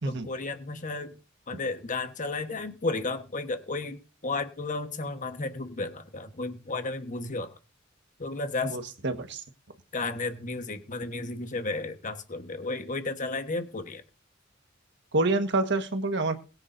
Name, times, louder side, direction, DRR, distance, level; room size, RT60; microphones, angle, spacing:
voice 1, 0.0-1.2 1.5-7.5 8.2-8.8 9.9-14.0, left 3 dB, 40° left, 8 dB, 1.3 m, -33 dB
voice 2, 8.6-9.4 15.1-16.4, right 2 dB, 65° right, 8 dB, 1.5 m, -27 dB
22.0 x 9.6 x 2.7 m, 0.34 s
head